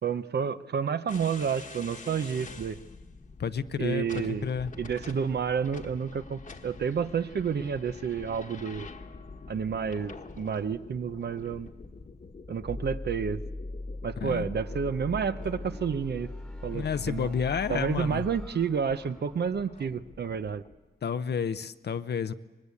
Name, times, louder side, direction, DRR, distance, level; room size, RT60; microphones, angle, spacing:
voice 1, 0.0-2.8 3.8-4.5 4.8-8.9 9.5-11.7 12.5-13.4 14.0-16.3 16.6-17.3 17.7-20.6, right 6 dB, 75° right, 11 dB, 0.8 m, -30 dB
sound 1, 1.1-20.8, left 4 dB, 50° left, 1.3 m, -47 dB
voice 2, 3.4-4.7 14.2-14.5 16.7-18.3 21.0-22.3, left 7 dB, 75° left, 11 dB, 0.7 m, -30 dB
sound 2, 12.7-19.6, left 2 dB, 5° left, 1.3 m, -40 dB
24.0 x 20.0 x 8.4 m, 1.2 s
wide cardioid pair, 140°, 17 cm